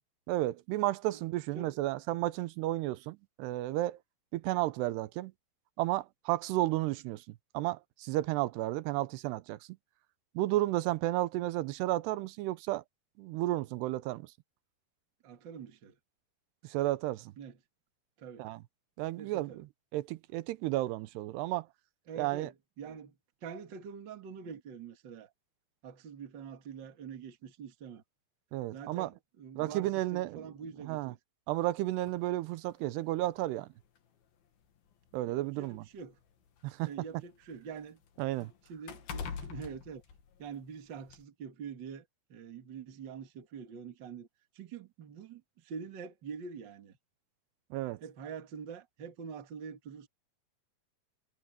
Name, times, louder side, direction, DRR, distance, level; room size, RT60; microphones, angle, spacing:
voice 1, 0.3-4.0 4.3-5.3 5.8-9.6 10.4-12.8 13.2-14.3 16.6-17.3 18.4-18.6 19.0-19.7 19.9-21.7 22.2-22.5 28.5-29.1 29.6-30.4 30.8-31.1 31.5-33.7 35.1-35.9 36.6-36.9 38.2-38.5 47.7-48.0, right 16 dB, 85° right, 2.9 m, -32 dB
voice 2, 15.2-16.0 17.4-17.6 18.2-18.5 19.2-19.6 22.1-23.1 23.4-25.3 25.8-28.0 28.7-31.2 35.3-36.2 36.9-38.0 38.7-40.0 40.4-44.3 44.5-46.9 48.0-50.1, right 6 dB, 45° right, 1.6 m, -45 dB
sound 1, 32.1-32.2 33.3-33.4 33.8-34.0 34.9-36.9 37.3-40.7 41.1-41.2, left 6 dB, 65° left, 4.0 m, -45 dB
omnidirectional pair, 4.7 m